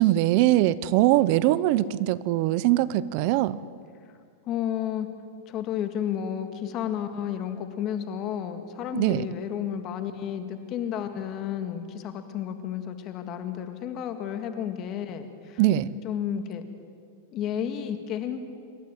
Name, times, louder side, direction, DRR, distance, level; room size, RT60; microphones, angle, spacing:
voice 1, 0.0-3.6 8.9-9.3 15.6-15.9, right 15 dB, 50° right, 17 dB, 0.8 m, -22 dB
voice 2, 4.5-5.1 5.5-15.6 16.0-16.6 17.3-18.4, left 9 dB, 35° left, 8 dB, 1.9 m, -32 dB
27.0 x 12.5 x 9.0 m, 2.2 s
supercardioid pair, 145°, 0 cm